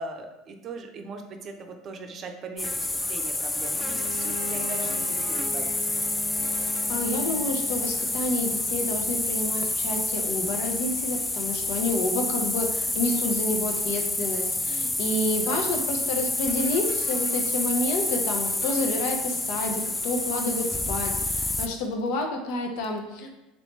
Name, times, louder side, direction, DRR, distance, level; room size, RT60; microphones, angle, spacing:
voice 1, 0.0-5.7 15.2-15.7, right 3 dB, 45° right, 4 dB, 0.5 m, -40 dB
sound 1, 2.6-21.7, left 2 dB, 15° left, 0.3 m, -28 dB
Bowed string instrument, 3.7-8.4, left 3 dB, 85° left, 1.1 m, -40 dB
voice 2, 6.6-23.3, left 2 dB, 65° left, 3 dB, 0.6 m, -29 dB
3.1 x 3.0 x 3.1 m, 1.0 s
hypercardioid pair, 80°, 0 cm